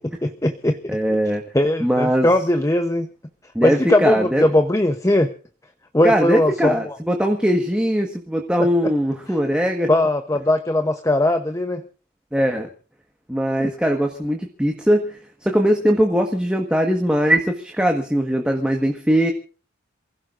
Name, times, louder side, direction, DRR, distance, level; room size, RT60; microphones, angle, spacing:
voice 1, 0.0-1.0 1.5-3.1 3.6-5.3 5.9-6.9 8.6-8.9 9.9-11.8 13.6-13.7, left 1 dB, 15° left, 7 dB, 0.8 m, -20 dB
voice 2, 0.9-1.4 1.8-2.3 3.5-4.4 6.0-9.9 12.3-12.7 13.3-19.3, equal, 5° right, 2 dB, 1.5 m, -20 dB
28.0 x 16.0 x 2.6 m, 0.38 s
head